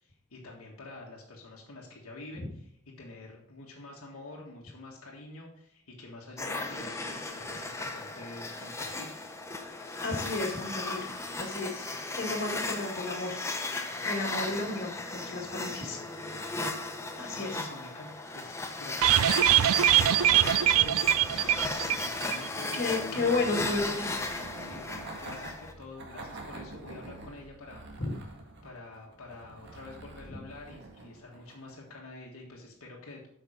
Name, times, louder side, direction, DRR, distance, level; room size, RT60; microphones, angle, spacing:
voice 1, 0.0-2.4 3.0-9.2 17.3-23.1 23.5-24.2 24.6-24.8 25.2-28.0 28.6-33.3, left 2 dB, 75° left, -2 dB, 1.6 m, -47 dB
sound 1, 6.4-25.7, left 2 dB, 15° left, 0.8 m, -36 dB
voice 2, 10.0-11.1 11.4-11.9 12.2-13.4 13.7-16.0 17.2-17.7 22.7-24.1 28.0-28.1, left 3 dB, 45° left, 1 dB, 2.2 m, -32 dB
sound 2, 19.0-22.5 22.7-22.8 23.1-23.2, right 12 dB, 70° right, 0.3 m, -23 dB
sound 3, 19.7-31.9, right 2 dB, 50° right, 1.7 m, -47 dB
8.6 x 5.9 x 5.0 m, 0.73 s
head